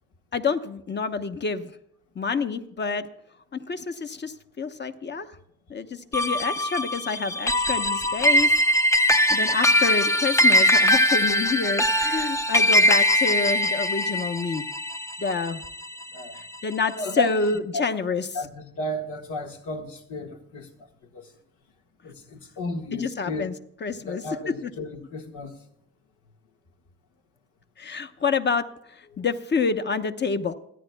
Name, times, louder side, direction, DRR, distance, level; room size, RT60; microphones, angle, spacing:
voice 1, 0.3-1.7 2.1-3.1 3.5-5.3 5.7-8.5 9.3-14.7 15.2-15.6 16.3-18.3 22.9-23.5 23.8-24.2 24.6-24.7 27.8-28.6 29.2-30.5, left 5 dB, 35° left, 1.0 m, -28 dB
sound 1, 6.1-16.7, equal, 10° left, 0.5 m, -22 dB
voice 2, 16.9-17.5 17.7-17.8 18.1-20.9 21.1-21.3 22.0-23.5 24.0-25.6 29.1-29.2, left 1 dB, 90° left, 1.6 m, -33 dB
27.5 x 9.9 x 2.3 m
cardioid pair, 90°, 30 cm